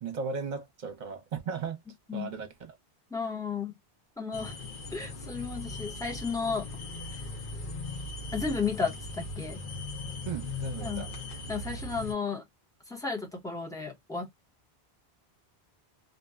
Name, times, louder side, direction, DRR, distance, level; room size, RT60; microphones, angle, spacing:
voice 1, 0.0-1.8 2.1-2.7 10.3-11.1, right 5 dB, 50° right, 0.9 m, -36 dB
voice 2, 3.1-3.7 4.2-4.6 4.9-6.7 7.1-7.2 8.3-9.6 10.8-11.0 11.5-12.4 12.9-14.3, left 5 dB, 5° left, 0.8 m, -33 dB
sound 1, 4.3-12.1, left 2 dB, 55° left, 0.9 m, -39 dB
2.5 x 2.1 x 2.3 m
omnidirectional pair, 1.1 m